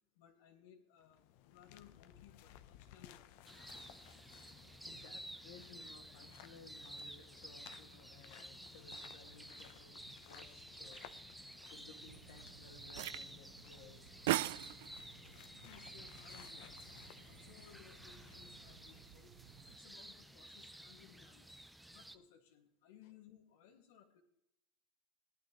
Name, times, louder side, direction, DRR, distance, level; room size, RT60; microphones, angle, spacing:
voice 1, 0.2-3.3 4.6-5.0 15.5-17.0 17.3-19.3 19.7-21.6 21.9-24.2, left 9 dB, 90° left, 1 dB, 1.8 m, -62 dB
sound 1, 1.0-19.2, left 12 dB, 50° left, 0.7 m, -60 dB
sound 2, 3.4-22.2, right 1 dB, ahead, 0.5 m, -53 dB
voice 2, 4.9-14.8 23.0-23.1, left 5 dB, 70° left, 6 dB, 1.8 m, -60 dB
sound 3, 12.0-19.8, right 17 dB, 70° right, 0.3 m, -44 dB
17.5 x 11.0 x 3.0 m, 0.80 s
supercardioid pair, 180°, 0 cm